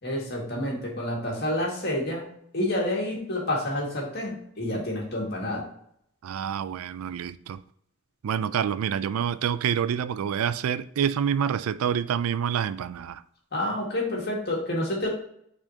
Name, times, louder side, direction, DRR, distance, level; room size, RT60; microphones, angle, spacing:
voice 1, 0.0-2.2 2.5-5.6 13.5-15.1, left 1 dB, 50° left, 2.0 m, -29 dB
voice 2, 6.2-7.6 8.2-13.2, right 8 dB, 85° right, 0.3 m, -27 dB
8.7 x 4.3 x 2.8 m
head